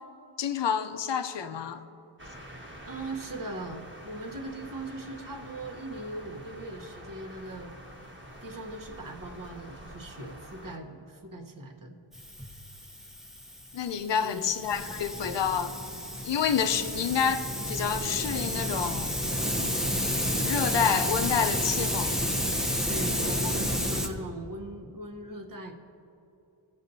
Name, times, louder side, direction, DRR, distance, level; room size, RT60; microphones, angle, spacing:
voice 1, 0.4-1.8 13.7-15.7 16.2-19.1 20.4-22.1 23.3-23.4, left 7 dB, 60° left, 0.7 m, -28 dB
sound 1, 2.2-10.8, equal, 25° right, 1.3 m, -47 dB
voice 2, 2.9-7.7 8.4-12.0 14.2-14.5 22.9-25.7, right 1 dB, 40° right, 1.1 m, -40 dB
Hiss, 12.1-24.1, equal, ahead, 0.8 m, -31 dB
18.0 x 7.0 x 2.7 m
wide cardioid pair, 95°, 50 cm